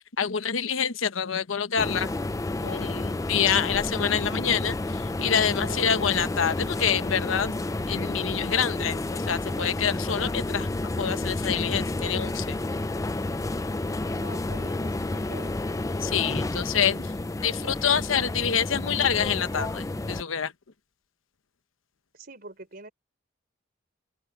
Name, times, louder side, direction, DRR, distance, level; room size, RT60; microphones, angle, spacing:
voice 1, 0.2-2.1 2.6-7.5 7.9-12.6 16.0-17.1 17.4-20.5, left 7 dB, 90° left, 0.9 m, -27 dB
sound 1, 1.8-20.2, left 2 dB, 15° left, 0.4 m, -30 dB
voice 2, 14.2-15.6 22.1-22.9, right 2 dB, 50° right, 4.1 m, -44 dB
open air
head